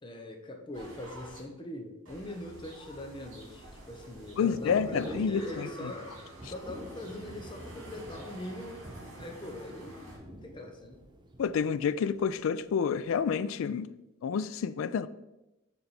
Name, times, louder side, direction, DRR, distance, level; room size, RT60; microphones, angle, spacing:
voice 1, 0.0-6.2 6.4-8.8 9.2-11.0, left 1 dB, 20° left, 0.6 m, -42 dB
sound 1, 0.7-1.4 2.0-10.2, right 1 dB, 70° right, 2.2 m, -50 dB
Thunder / Rain, 2.8-12.7 13.0-13.3, equal, 20° right, 0.5 m, -48 dB
voice 2, 4.4-5.9 11.4-13.9 14.2-15.1, left 6 dB, 65° left, 0.3 m, -29 dB
6.9 x 3.4 x 4.1 m
head